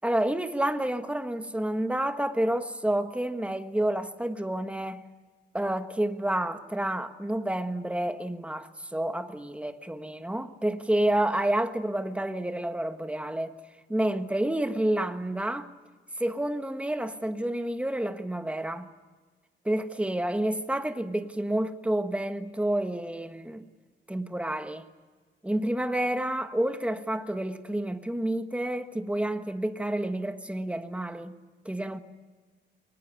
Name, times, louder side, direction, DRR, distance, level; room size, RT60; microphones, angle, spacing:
voice 1, 0.0-5.0 5.5-13.5 13.9-15.7 16.2-18.9 19.6-23.6 24.1-24.8 25.4-31.4 31.6-32.0, right 1 dB, 5° right, 1.4 m, -29 dB
23.0 x 19.5 x 9.5 m
wide cardioid pair, 125°, 19 cm